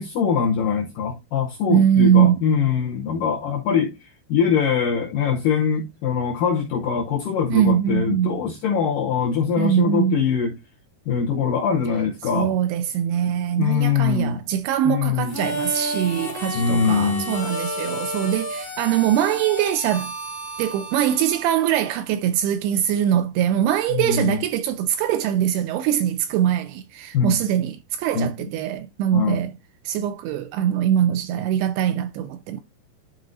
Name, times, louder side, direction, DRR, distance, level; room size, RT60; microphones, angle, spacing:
voice 1, 0.0-4.0 4.3-10.5 11.1-12.6 13.6-14.4 14.9-15.4 16.5-17.4 23.9-24.4 27.1-27.4 28.1-28.3 29.1-29.5, left 6 dB, 75° left, 1.9 m, -22 dB
voice 2, 1.7-2.4 7.5-8.4 9.6-10.2 12.3-20.1 20.6-29.5 29.9-32.6, right 10 dB, 85° right, 2.3 m, -22 dB
Harmonica, 15.2-22.1, equal, 25° left, 0.4 m, -32 dB
12.0 x 4.1 x 2.6 m
omnidirectional pair, 4.9 m